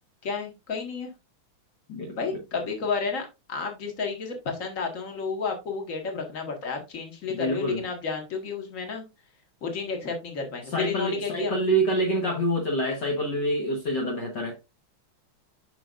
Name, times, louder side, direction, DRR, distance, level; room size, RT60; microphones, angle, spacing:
voice 1, 0.2-1.1 2.2-9.0 9.6-11.5, left 5 dB, 40° left, 2.1 m, -31 dB
voice 2, 1.9-2.4 7.3-7.9 10.7-14.6, right 1 dB, 60° left, 1.9 m, -27 dB
9.0 x 5.8 x 2.5 m
omnidirectional pair, 2.3 m